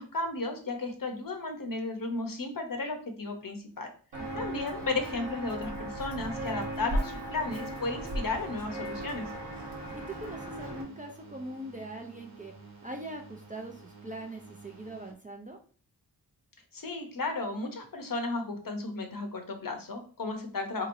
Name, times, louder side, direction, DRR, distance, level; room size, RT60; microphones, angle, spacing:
voice 1, 0.0-3.9 4.3-9.3 16.7-20.9, left 3 dB, 55° left, 5 dB, 0.8 m, -34 dB
Walk footsteps, 4.1-10.8, right 1 dB, 85° right, 1.2 m, -36 dB
sound 1, 7.4-15.1, right 4 dB, 60° right, 1.1 m, -52 dB
voice 2, 9.9-12.5 12.8-15.6, right 1 dB, 20° right, 2 dB, 0.5 m, -42 dB
3.9 x 2.9 x 2.6 m, 0.40 s
wide cardioid pair, 100°, 41 cm